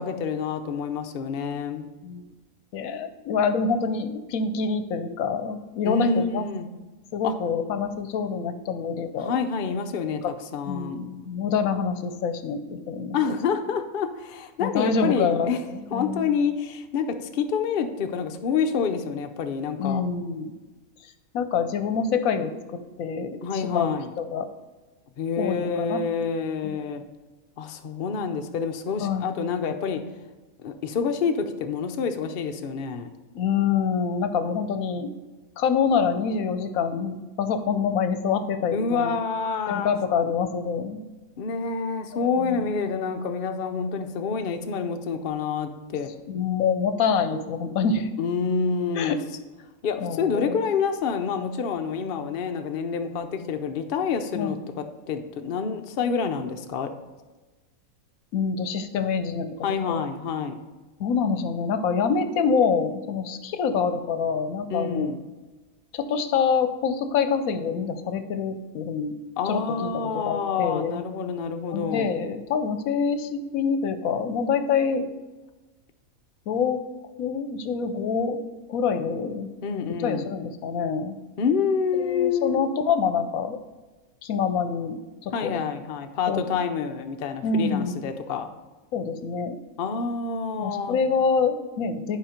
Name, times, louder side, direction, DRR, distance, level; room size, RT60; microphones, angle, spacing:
voice 1, 0.0-1.9 5.8-6.7 7.2-7.3 9.2-11.0 13.1-15.6 15.9-17.1 17.3-20.0 23.4-24.1 25.2-27.0 27.6-30.0 30.6-33.1 38.7-39.9 41.4-46.1 48.2-49.1 49.8-56.9 59.6-60.6 64.7-65.2 69.4-72.1 79.6-80.3 81.4-82.6 85.3-88.5 89.8-91.0, left 5 dB, 50° left, 6 dB, 0.7 m, -27 dB
voice 2, 2.7-6.4 7.1-9.3 10.2-10.3 10.7-13.2 14.6-16.3 19.8-20.5 21.0-22.5 23.0-24.5 25.4-26.0 26.6-26.7 29.0-29.3 33.3-35.1 35.6-39.2 39.7-41.0 42.1-42.6 46.3-48.1 48.9-49.2 50.0-50.6 54.3-54.6 58.3-59.5 59.9-60.0 61.0-65.1 65.9-69.1 69.4-71.0 71.7-75.1 76.5-76.8 77.2-78.4 78.7-79.5 80.0-81.2 81.9-83.6 84.2-85.0 85.2-85.6 86.3-86.4 87.4-88.0 88.9-89.6 90.6-92.2, left 6 dB, 75° left, 9 dB, 1.1 m, -26 dB
10.5 x 4.8 x 5.0 m, 1.2 s
omnidirectional pair, 1.5 m